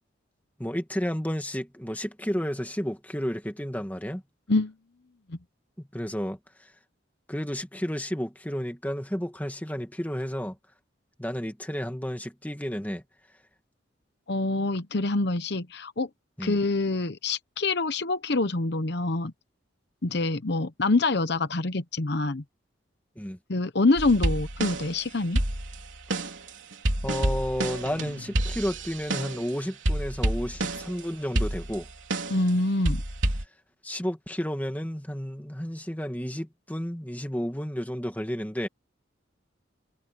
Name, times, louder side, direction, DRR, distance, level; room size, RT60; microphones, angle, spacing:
voice 1, 0.6-4.2 5.8-6.4 7.3-10.6 11.2-13.0 16.4-16.6 20.1-20.2 23.2-23.4 27.0-31.9 33.8-38.7, equal, 10° left, 2.0 m, -32 dB
voice 2, 14.3-16.1 16.4-19.3 20.0-22.4 23.5-25.4 32.3-33.0, left 2 dB, 55° left, 0.9 m, -26 dB
sound 1, 24.0-25.0 25.3-29.5 29.8-31.0 31.3-32.5 32.8-33.4, right 1 dB, 70° right, 3.8 m, -29 dB
head